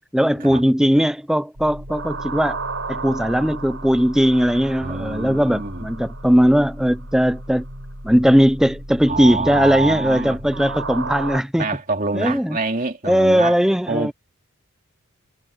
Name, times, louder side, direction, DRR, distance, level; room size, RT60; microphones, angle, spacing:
voice 1, 0.1-2.6 2.9-7.6 8.0-11.7 12.1-12.6 13.0-14.1, equal, 5° right, 0.6 m, -18 dB
sound 1, 1.6-11.4, right 2 dB, 60° right, 7.8 m, -33 dB
voice 2, 4.8-5.8 9.1-10.4 11.6-13.6 13.9-14.1, right 3 dB, 40° right, 3.2 m, -26 dB
head